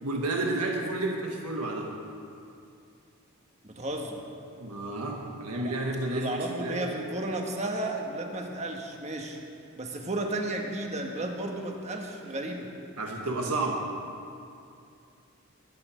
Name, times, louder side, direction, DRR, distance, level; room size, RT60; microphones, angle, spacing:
voice 1, 0.0-1.9 4.6-6.9 13.0-13.9, right 2 dB, 80° right, 0 dB, 1.6 m, -31 dB
voice 2, 3.6-4.2 5.6-5.7 6.0-9.4 9.8-12.7, right 1 dB, 30° right, 2 dB, 1.5 m, -33 dB
22.5 x 8.9 x 5.0 m, 2.5 s
head